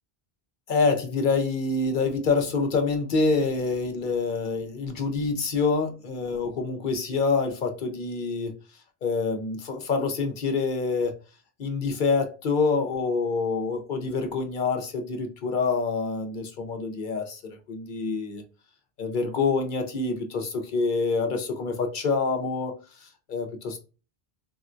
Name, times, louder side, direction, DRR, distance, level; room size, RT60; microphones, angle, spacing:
voice 1, 0.7-8.6 9.0-11.1 11.6-17.4 17.7-18.4 19.0-22.7 23.0-23.8, left 4 dB, 55° left, 0.7 m, -26 dB
3.6 x 2.1 x 2.4 m
omnidirectional pair, 1.1 m